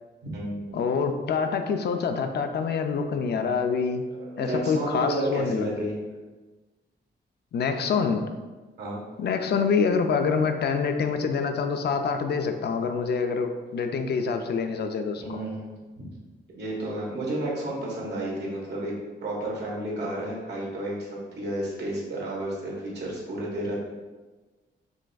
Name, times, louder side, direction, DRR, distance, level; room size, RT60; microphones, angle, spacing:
voice 1, 0.2-0.8 4.2-6.0 8.8-9.0 15.2-15.7 16.0-16.1 16.5-18.9 19.2-23.7, right 1 dB, 65° right, -4 dB, 1.2 m, -31 dB
voice 2, 0.7-4.0 4.4-5.7 7.5-8.2 9.2-15.4, left 5 dB, 60° left, 6 dB, 0.4 m, -26 dB
5.0 x 3.3 x 2.3 m, 1.3 s
wide cardioid pair, 125°, 19 cm